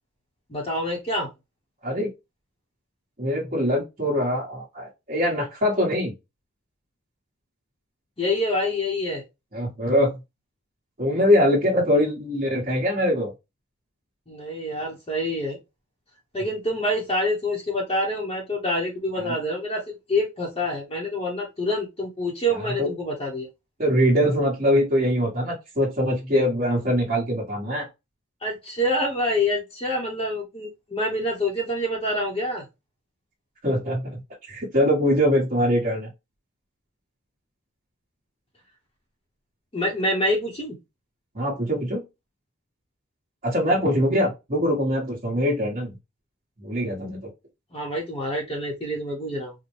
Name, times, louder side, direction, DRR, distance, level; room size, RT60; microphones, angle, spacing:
voice 1, 0.5-1.3 8.2-9.2 14.3-15.6 16.3-23.5 28.4-32.6 39.7-40.7 47.7-49.5, left 1 dB, 25° left, -3 dB, 0.8 m, -26 dB
voice 2, 3.2-6.1 9.5-10.2 11.0-13.3 19.2-19.3 22.5-22.9 23.8-27.9 33.6-36.1 41.3-42.0 43.4-45.9 46.6-47.2, equal, 35° right, -6 dB, 1.2 m, -23 dB
4.2 x 2.1 x 3.1 m, 0.23 s
head